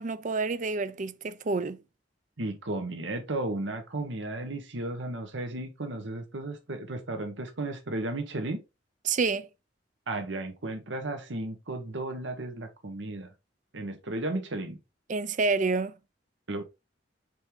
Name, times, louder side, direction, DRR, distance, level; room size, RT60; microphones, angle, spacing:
voice 1, 0.0-1.8 9.0-9.5 15.1-16.0, right 4 dB, 45° right, 0.5 m, -28 dB
voice 2, 2.4-8.6 10.1-13.3 13.7-14.8 16.5-16.6, right 2 dB, 75° right, 1.1 m, -34 dB
7.4 x 3.5 x 3.8 m
head